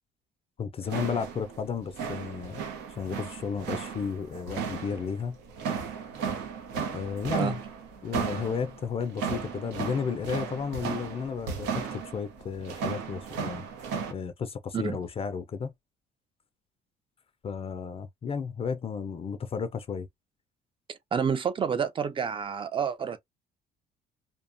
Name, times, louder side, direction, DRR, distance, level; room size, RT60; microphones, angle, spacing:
voice 1, 0.6-2.6 3.0-5.4 6.9-7.6 8.0-13.6 14.1-15.7 17.4-20.1, left 6 dB, 35° left, 0.4 m, -33 dB
sound 1, 0.8-14.1, right 6 dB, 90° right, 0.8 m, -35 dB
voice 2, 20.9-23.2, right 7 dB, 30° right, 0.5 m, -29 dB
2.7 x 2.2 x 2.5 m
cardioid pair, 110°, 17 cm